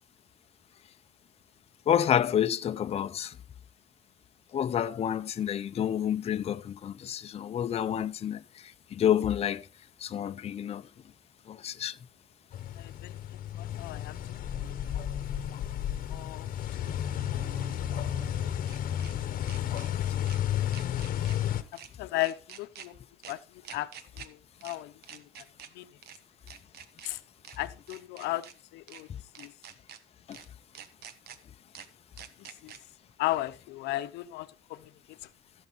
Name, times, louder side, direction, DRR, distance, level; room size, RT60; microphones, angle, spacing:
voice 1, 1.9-3.4 4.5-9.7 10.0-10.9 11.5-12.0 29.1-29.2 30.3-30.4, left 9 dB, 40° left, 0.6 m, -29 dB
sound 1, 12.5-21.6, left 11 dB, 55° left, 1.0 m, -32 dB
voice 2, 12.8-13.1 13.6-14.1 14.6-14.8 16.1-16.5 16.9-17.1 20.0-20.3 22.0-23.0 23.3-23.4 23.7-23.9 24.2-24.4 24.6-25.2 25.8-25.9 27.0-27.2 27.6-28.4 28.7-29.1 29.4-29.5 32.6-32.7 33.2-34.9, left 17 dB, 90° left, 0.7 m, -35 dB
sound 2, 14.8-14.9 17.3-19.1 19.5-19.9 20.3-20.4 20.7-21.4 21.7-21.9 22.2-22.9 23.2-23.3 23.6-24.3 24.6-24.8 25.0-25.7 26.0-26.2 26.5-27.1 27.4-27.6 27.9-28.5 28.9-29.0 29.4-30.0 30.3-30.5 30.8-31.4 31.7-31.9 32.2-32.8, right 8 dB, 70° right, 1.2 m, -47 dB
15.5 x 7.2 x 4.0 m
cardioid pair, 110°, 17 cm